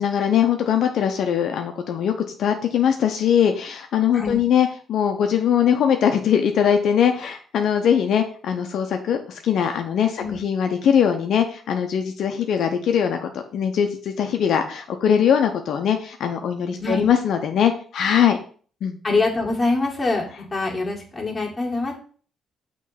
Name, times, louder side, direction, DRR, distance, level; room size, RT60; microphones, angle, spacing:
voice 1, 0.0-2.1 2.4-18.4 18.8-19.0, left 8 dB, 70° left, 5 dB, 0.6 m, -21 dB
voice 2, 16.8-17.1 19.0-20.3 20.5-21.9, left 3 dB, 20° left, -1 dB, 2.1 m, -24 dB
6.3 x 3.1 x 5.7 m, 0.43 s
cardioid pair, 90°, 0 cm